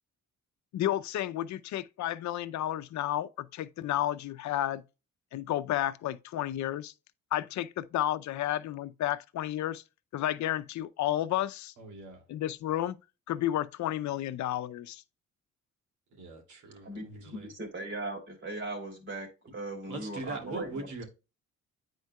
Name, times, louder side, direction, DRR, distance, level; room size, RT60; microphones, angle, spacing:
voice 1, 0.7-4.8 5.3-6.9 7.3-9.8 10.1-11.7 12.3-13.0 13.3-15.0, left 13 dB, 70° left, 0.6 m, -31 dB
voice 2, 11.8-12.2 16.1-17.5 19.9-21.0, right 2 dB, 80° right, 2.7 m, -41 dB
voice 3, 16.8-21.1, right 2 dB, 40° right, 3.6 m, -39 dB
9.3 x 4.7 x 2.3 m
cardioid pair, 90°, 30 cm